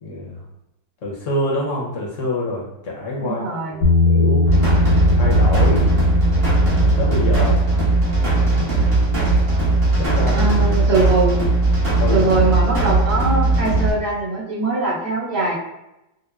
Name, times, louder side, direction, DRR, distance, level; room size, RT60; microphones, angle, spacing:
voice 1, 0.0-0.4 1.0-3.4 3.7-4.5 5.2-5.9 7.0-7.6 10.0-10.6 12.0-12.3, left 1 dB, 55° left, -3 dB, 0.9 m, -26 dB
voice 2, 3.2-3.8 10.2-11.4 12.1-15.6, right 2 dB, 60° right, -7 dB, 1.7 m, -21 dB
Bass guitar, 3.8-10.1, left 3 dB, 90° left, 1.5 m, -21 dB
sound 1, 4.4-13.9, right 2 dB, 35° right, 1.1 m, -18 dB
5.1 x 2.2 x 2.3 m, 0.88 s
omnidirectional pair, 2.0 m